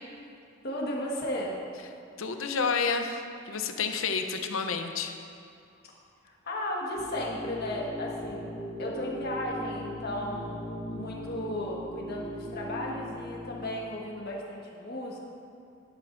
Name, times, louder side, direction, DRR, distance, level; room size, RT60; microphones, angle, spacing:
voice 1, 0.6-1.6 6.2-15.2, left 1 dB, 50° left, -3 dB, 1.5 m, -35 dB
voice 2, 2.2-5.1, left 5 dB, 85° left, 6 dB, 0.7 m, -30 dB
sound 1, 7.0-13.7, equal, 25° left, 1.7 m, -39 dB
12.0 x 11.5 x 2.6 m, 2.5 s
head